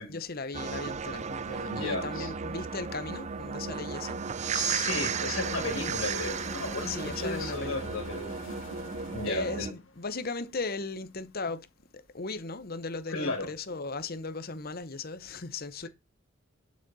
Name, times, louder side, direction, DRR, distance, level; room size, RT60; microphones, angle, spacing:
voice 1, 0.0-4.9 6.8-7.8 9.2-11.7 11.9-15.9, left 3 dB, 45° left, 1.0 m, -37 dB
sound 1, 0.5-9.7, right 6 dB, 35° right, 0.4 m, -34 dB
voice 2, 1.6-2.3 4.5-8.4 9.1-9.7 13.1-13.5, left 3 dB, 80° left, 2.6 m, -34 dB
sound 2, 3.2-11.2, left 3 dB, 65° left, 2.1 m, -47 dB
11.0 x 6.4 x 4.2 m
head